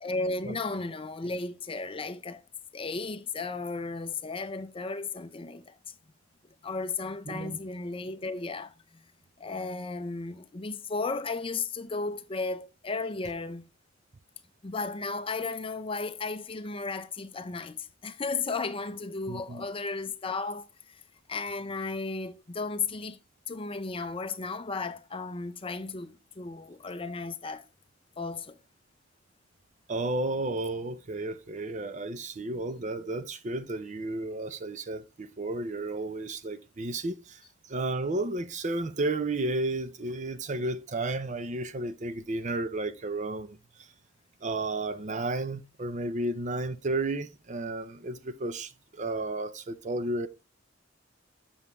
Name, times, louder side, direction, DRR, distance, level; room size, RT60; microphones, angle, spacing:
voice 1, 0.0-2.4 2.7-5.8 6.6-8.7 9.4-13.7 14.6-21.0 21.3-23.2 23.5-27.6 28.2-28.6, left 3 dB, 25° left, 0.5 m, -34 dB
voice 2, 7.3-7.6 19.3-19.6 29.9-37.4 37.7-43.6 44.4-50.3, right 2 dB, 40° right, 0.6 m, -32 dB
7.1 x 7.0 x 3.2 m
head